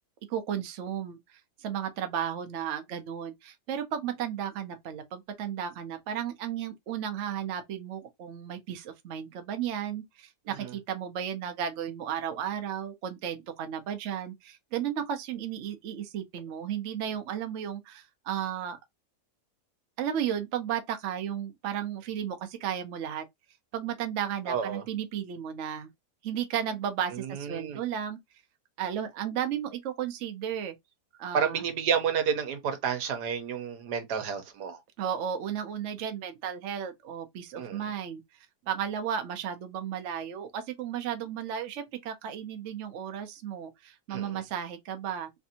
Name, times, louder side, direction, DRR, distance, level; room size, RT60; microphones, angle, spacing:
voice 1, 0.3-18.8 20.0-23.2 23.7-25.9 26.2-28.2 28.8-30.7 31.2-31.6 35.0-38.2 38.7-45.3, right 9 dB, 60° right, 0.8 m, -34 dB
voice 2, 24.5-24.8 27.1-27.8 31.3-34.8 37.5-37.9 44.1-44.4, right 7 dB, 85° right, 1.4 m, -30 dB
3.3 x 2.6 x 2.7 m
omnidirectional pair, 1.7 m